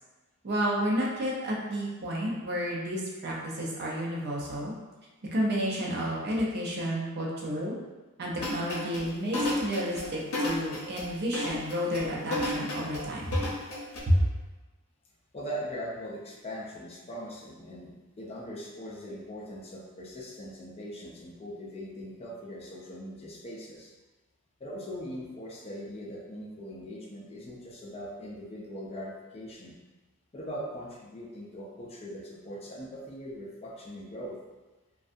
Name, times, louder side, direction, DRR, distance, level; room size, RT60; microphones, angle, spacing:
voice 1, 0.4-4.7 5.3-7.8 8.2-13.3 14.1-14.3, equal, 50° right, -3 dB, 0.5 m, -30 dB
sound 1, 8.4-14.0, left 1 dB, 75° left, 0.6 m, -33 dB
voice 2, 15.3-23.9 24.6-29.8 30.3-34.4, equal, 30° left, -4 dB, 0.4 m, -41 dB
2.5 x 2.3 x 2.5 m, 1.2 s
head